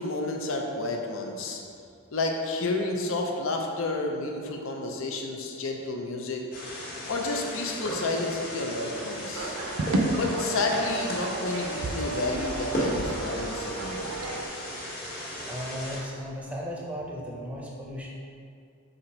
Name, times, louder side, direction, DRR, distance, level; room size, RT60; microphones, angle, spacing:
voice 1, 0.0-1.7 2.1-6.4 7.1-9.6 10.1-14.1, left 2 dB, 65° left, 2 dB, 0.6 m, -30 dB
sound 1, 6.5-16.0, equal, 45° left, 1.5 m, -35 dB
sound 2, 9.3-14.5, right 2 dB, 75° right, 0.6 m, -32 dB
voice 2, 15.4-18.1, equal, 5° right, -4 dB, 0.7 m, -36 dB
5.8 x 3.8 x 4.5 m, 2.4 s
head